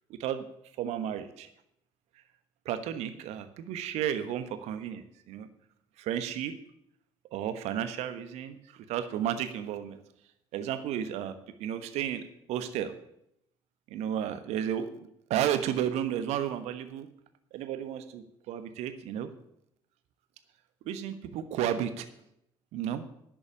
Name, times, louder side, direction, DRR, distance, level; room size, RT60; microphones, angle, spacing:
voice 1, 0.1-0.4 0.8-1.5 2.6-5.5 6.0-6.5 7.3-10.0 10.5-12.9 13.9-17.1 17.5-19.3 20.8-22.1 22.7-23.0, right 10 dB, 60° right, 10 dB, 1.3 m, -33 dB
11.0 x 7.8 x 8.7 m, 0.78 s
figure-of-eight pair, 50°, 12 cm